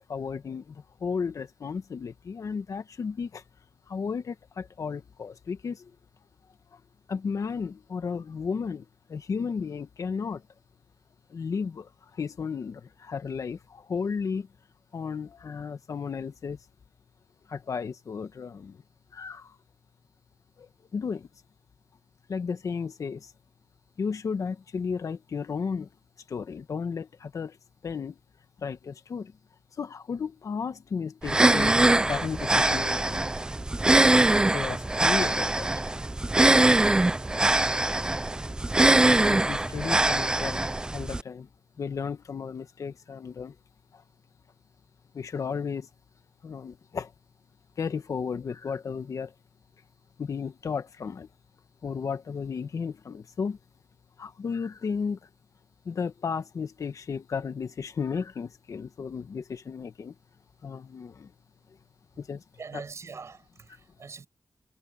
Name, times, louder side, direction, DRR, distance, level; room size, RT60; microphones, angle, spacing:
voice 1, 0.0-3.4 3.9-5.9 6.7-6.8 7.1-10.4 11.3-14.5 14.9-16.6 17.5-18.8 19.1-19.5 20.6-21.3 22.3-23.3 24.0-25.9 26.3-27.6 27.8-28.2 28.6-29.3 29.8-33.2 34.5-35.9 39.0-40.6 40.9-41.5 41.8-43.5 43.9-44.0 45.1-45.9 46.4-47.1 47.8-49.3 50.2-51.3 51.8-53.6 54.2-55.3 55.8-60.1 60.6-61.3 62.2-62.4, left 5 dB, 65° left, 1.6 m, -34 dB
sound 1, 31.2-41.2, right 2 dB, 15° right, 0.4 m, -22 dB
voice 2, 62.6-64.3, right 5 dB, 55° right, 5.6 m, -43 dB
wide cardioid pair, 150°, 6 cm